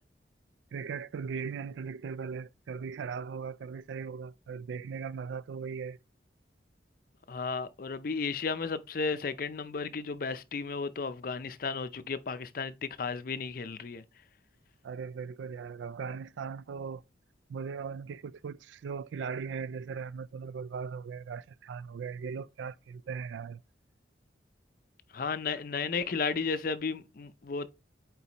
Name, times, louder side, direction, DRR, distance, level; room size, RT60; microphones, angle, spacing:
voice 1, 0.7-6.0 14.8-17.0 17.5-23.6, right 6 dB, 80° right, 0.3 m, -38 dB
voice 2, 7.3-14.0 25.1-27.7, left 4 dB, 50° left, 0.5 m, -34 dB
8.2 x 4.0 x 2.9 m
head